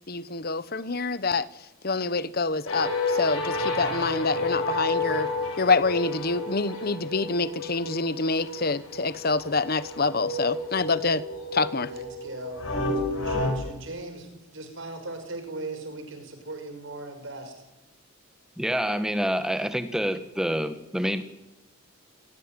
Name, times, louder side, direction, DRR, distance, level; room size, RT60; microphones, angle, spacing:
voice 1, 0.1-1.5 1.8-5.3 5.6-11.2 11.5-11.9, left 3 dB, 45° left, 16 dB, 1.1 m, -26 dB
sound 1, 2.7-13.5, left 2 dB, 75° left, 6.8 m, -31 dB
voice 2, 11.9-17.5, right 2 dB, 60° right, 7 dB, 5.5 m, -39 dB
voice 3, 18.6-21.2, equal, 5° right, 10 dB, 1.5 m, -27 dB
26.5 x 19.5 x 9.2 m, 0.97 s
head